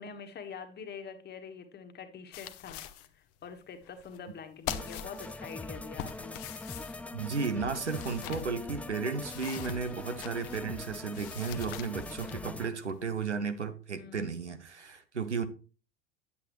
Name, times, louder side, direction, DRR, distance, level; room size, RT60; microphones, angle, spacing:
voice 1, 0.0-2.8 3.1-6.4 14.0-14.3, left 6 dB, 30° left, 1.6 m, -45 dB
sound 1, 2.3-3.1 3.4-3.5 3.8-4.4 4.6-5.5 6.0-8.5 9.0-10.8 11.1-13.2, left 11 dB, 45° left, 0.9 m, -43 dB
sound 2, 4.7-12.7, left 2 dB, 5° left, 0.3 m, -42 dB
voice 2, 7.1-15.4, right 5 dB, 85° right, 0.9 m, -34 dB
9.5 x 8.3 x 3.1 m
figure-of-eight pair, 75°, 34 cm